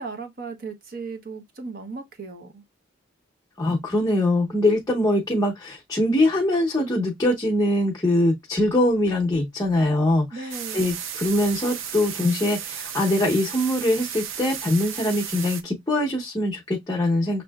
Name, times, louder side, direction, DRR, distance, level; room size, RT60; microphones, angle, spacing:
voice 1, 0.0-2.6 10.3-10.9, right 4 dB, 45° right, 0.8 m, -36 dB
voice 2, 3.6-17.4, left 1 dB, 20° left, 0.7 m, -23 dB
sound 1, 10.5-15.6, right 8 dB, 85° right, 0.6 m, -34 dB
6.4 x 2.7 x 2.3 m
head